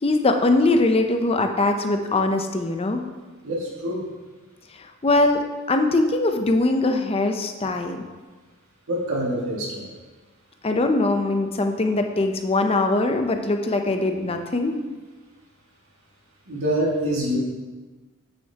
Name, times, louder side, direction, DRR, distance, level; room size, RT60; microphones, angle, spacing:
voice 1, 0.0-3.0 4.7-8.0 10.6-14.8, left 2 dB, 25° left, 5 dB, 0.5 m, -22 dB
voice 2, 3.4-4.0 8.9-9.9 16.5-17.4, right 1 dB, 75° right, -4 dB, 2.0 m, -25 dB
8.4 x 6.6 x 2.8 m, 1.3 s
head